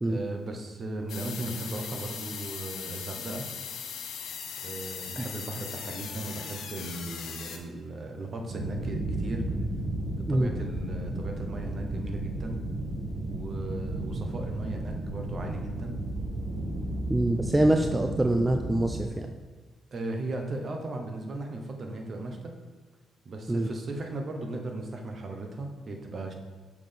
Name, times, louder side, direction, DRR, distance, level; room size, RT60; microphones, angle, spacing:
voice 1, 0.0-3.5 4.6-9.4 10.2-12.6 13.3-16.0 19.9-22.5 23.2-26.3, right 2 dB, 50° right, 3 dB, 1.0 m, -37 dB
sound 1, 1.1-7.6, left 7 dB, 80° left, 0.6 m, -39 dB
sound 2, 8.5-19.0, right 1 dB, 75° right, 1.7 m, -33 dB
voice 2, 17.1-19.3 23.5-23.7, right 1 dB, 15° right, 5 dB, 0.4 m, -25 dB
6.0 x 5.9 x 3.5 m, 1.3 s
cardioid pair, 80°, 0 cm